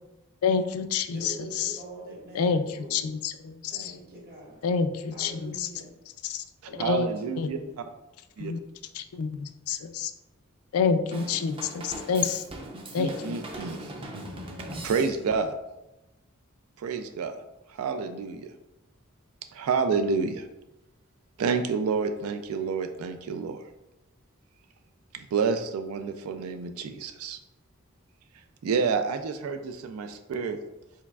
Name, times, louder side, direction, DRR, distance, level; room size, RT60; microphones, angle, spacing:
voice 1, 0.4-1.8 2.3-3.9 4.6-5.7 6.2-6.4 6.8-7.1 7.4-7.5 8.4-8.6 8.9-10.1 10.7-12.4 12.9-13.3, left 5 dB, 85° left, 9 dB, 0.4 m, -28 dB
voice 2, 1.1-3.1 3.7-4.6 5.1-5.9 6.7-7.9, right 1 dB, 45° right, -3 dB, 1.4 m, -43 dB
voice 3, 6.8-7.6 8.4-8.5 13.0-13.9 14.8-15.6 16.8-17.3 17.7-18.5 19.5-20.5 21.4-23.6 25.1-27.4 28.6-30.6, right 5 dB, 90° right, 7 dB, 0.4 m, -29 dB
Drum kit / Drum, 11.1-15.5, right 1 dB, 25° right, 0.5 m, -40 dB
4.6 x 4.1 x 2.3 m, 0.94 s
head